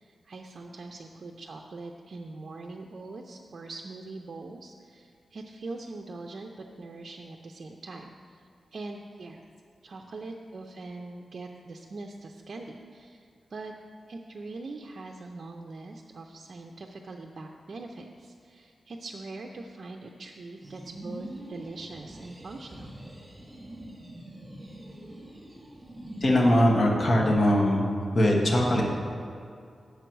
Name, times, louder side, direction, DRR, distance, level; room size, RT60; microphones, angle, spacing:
voice 1, 0.0-8.4 8.7-9.4 9.8-13.7 14.1-23.0, right 3 dB, 50° right, 1 dB, 0.5 m, -42 dB
sound 1, 20.6-26.7, right 1 dB, 20° right, 2.0 m, -43 dB
voice 2, 26.2-28.8, equal, 45° left, -1 dB, 1.3 m, -21 dB
9.0 x 6.7 x 4.6 m, 2.3 s
wide cardioid pair, 125°, 0 cm